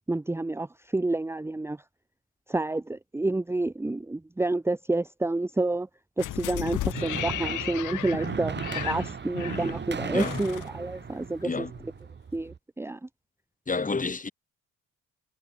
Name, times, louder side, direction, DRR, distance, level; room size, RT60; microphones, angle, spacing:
voice 1, 0.1-1.8 2.5-5.9 6.2-11.9 12.3-13.1, right 2 dB, 10° right, 0.8 m, -29 dB
sound 1, 6.2-11.4 11.8-11.9, left 14 dB, 80° left, 3.5 m, -35 dB
sound 2, 6.4-12.6, right 6 dB, 35° right, 1.8 m, -36 dB
voice 2, 13.7-14.3, left 4 dB, 25° left, 3.5 m, -29 dB
cardioid pair, 90°, 30 cm